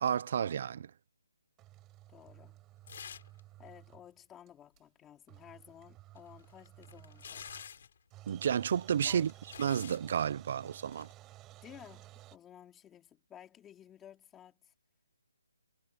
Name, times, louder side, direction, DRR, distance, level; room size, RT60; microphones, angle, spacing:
voice 1, 0.0-0.9 8.3-9.3 9.6-11.1, right 8 dB, 40° right, 0.8 m, -31 dB
sound 1, 1.6-4.2 4.5-4.6 4.8-4.9 5.3-7.8 8.1-12.4, right 16 dB, 15° right, 7.1 m, -55 dB
voice 2, 2.1-2.7 3.6-7.6 9.0-9.4 11.6-14.7, left 10 dB, 10° left, 4.3 m, -55 dB
sound 2, 2.9-3.4 3.7-3.8 6.2-8.0 8.9-10.1 10.9-11.1, left 7 dB, 45° left, 6.3 m, -49 dB
hypercardioid pair, 165°, 0 cm